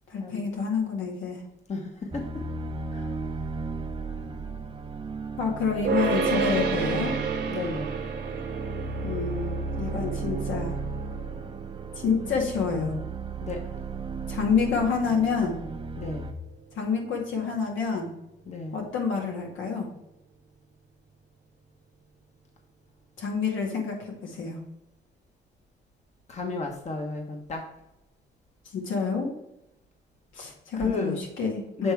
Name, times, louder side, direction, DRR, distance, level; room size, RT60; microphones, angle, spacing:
voice 1, 0.1-1.4 5.4-7.1 9.0-10.8 12.0-12.9 14.3-15.6 16.8-18.1 18.7-19.9 23.2-24.6 28.7-29.3 30.3-31.9, left 5 dB, 80° left, 0 dB, 2.1 m, -28 dB
voice 2, 1.7-2.2 2.9-3.1 7.5-8.0 13.4-13.6 16.0-16.3 18.5-18.8 26.3-27.6 30.7-31.2 31.8-31.9, left 3 dB, 35° left, 2 dB, 1.2 m, -32 dB
sound 1, 2.1-16.3, right 4 dB, 25° right, 0.7 m, -35 dB
sound 2, 5.8-17.2, right 5 dB, 55° right, 1.2 m, -33 dB
7.6 x 3.5 x 4.5 m, 0.88 s
cardioid pair, 90°, 20 cm